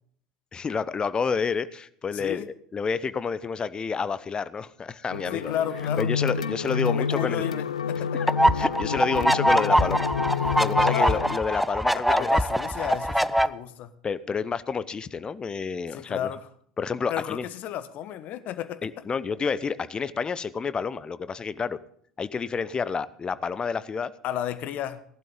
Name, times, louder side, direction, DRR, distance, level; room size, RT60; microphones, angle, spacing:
voice 1, 0.5-5.5 6.0-7.4 8.1-8.3 8.5-10.1 10.6-12.4 14.0-16.3 16.8-17.5 18.8-21.8 22.2-24.1, left 5 dB, 25° left, 16 dB, 0.8 m, -29 dB
voice 2, 2.1-2.5 5.3-6.1 6.8-8.2 10.9-11.2 12.1-13.9 15.9-16.5 17.1-18.9 24.2-25.0, left 11 dB, 45° left, 13 dB, 1.2 m, -32 dB
sound 1, 5.1-11.4, left 7 dB, 75° left, 0.5 m, -29 dB
sound 2, 8.3-13.5, equal, ahead, 0.6 m, -23 dB
17.5 x 12.0 x 3.8 m, 0.62 s
figure-of-eight pair, 70°, 4 cm